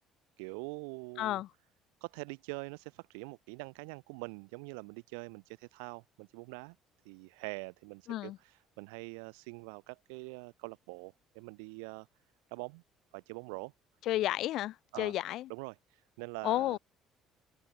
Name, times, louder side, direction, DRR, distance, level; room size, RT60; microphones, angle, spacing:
voice 1, 0.4-1.4 2.0-6.7 7.0-12.1 12.5-12.8 13.1-13.7 14.9-15.1 15.5-16.8, right 36 dB, 90° right, 1.5 m, -44 dB
voice 2, 1.2-1.5 8.1-8.4 14.1-15.4 16.4-16.8, left 14 dB, 70° left, 0.4 m, -32 dB
supercardioid pair, 80°, 0 cm